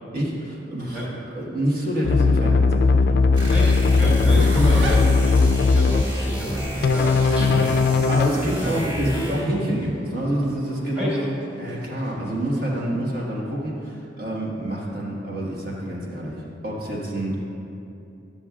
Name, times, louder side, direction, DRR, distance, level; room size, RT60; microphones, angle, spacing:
voice 1, 0.1-3.2 4.2-4.4 7.4-17.5, right 1 dB, 50° right, -4 dB, 1.6 m, -27 dB
sound 1, 2.0-6.0 6.8-8.3, left 4 dB, 55° left, 0.3 m, -18 dB
sound 2, 3.3-9.6, equal, 25° right, 1.5 m, -29 dB
voice 2, 3.5-7.7 8.6-8.8 11.0-11.2, equal, 10° right, -7 dB, 1.9 m, -29 dB
sound 3, 4.4-12.9, right 1 dB, 80° right, 1.0 m, -40 dB
13.0 x 7.0 x 2.4 m, 2.7 s
head